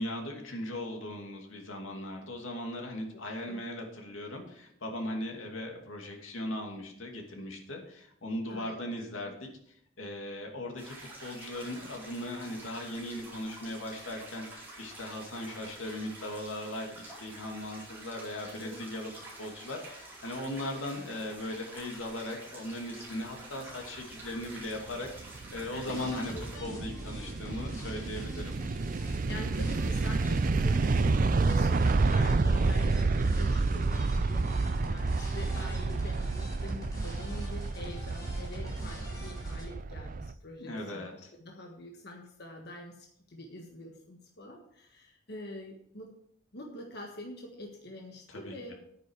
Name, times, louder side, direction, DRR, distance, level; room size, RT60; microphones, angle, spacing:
voice 1, 0.0-9.5 10.0-19.1 19.4-25.1 25.5-26.3 26.6-28.5 40.6-41.1 48.3-48.7, left 1 dB, 90° left, 1 dB, 2.6 m, -38 dB
sound 1, 10.8-26.6, right 2 dB, 10° right, 4.4 m, -48 dB
sound 2, 24.8-40.3, right 3 dB, 45° right, 0.4 m, -29 dB
sound 3, 25.8-39.6, equal, 20° left, 4.3 m, -43 dB
voice 2, 29.3-41.1 41.4-46.1 46.5-48.7, left 1 dB, 55° left, 1 dB, 1.5 m, -45 dB
10.5 x 9.5 x 4.8 m, 0.71 s
head